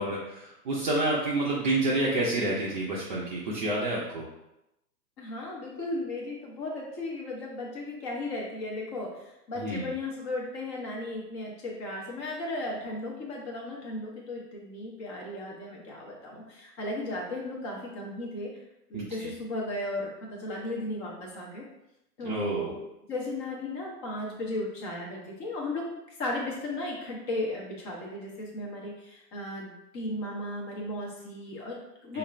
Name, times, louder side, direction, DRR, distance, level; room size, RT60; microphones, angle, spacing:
voice 1, 0.0-4.3 9.6-9.9 18.9-19.3 22.2-22.7 32.1-32.2, right 2 dB, 30° right, -6 dB, 0.5 m, -29 dB
voice 2, 5.2-18.5 18.9-21.6 22.2-22.8 23.1-25.9 26.2-32.2, left 1 dB, 20° left, -2 dB, 0.6 m, -35 dB
4.3 x 2.5 x 3.1 m, 0.88 s
figure-of-eight pair, 120°, 48 cm